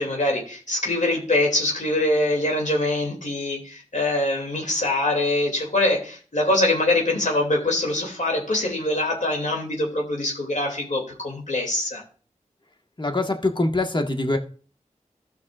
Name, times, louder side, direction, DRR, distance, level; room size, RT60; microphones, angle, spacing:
voice 1, 0.0-12.0, left 1 dB, 65° left, 0 dB, 2.8 m, -24 dB
voice 2, 13.0-14.4, left 2 dB, 35° left, 5 dB, 1.6 m, -23 dB
15.5 x 5.8 x 2.5 m, 0.41 s
cardioid pair, 40°, 13 cm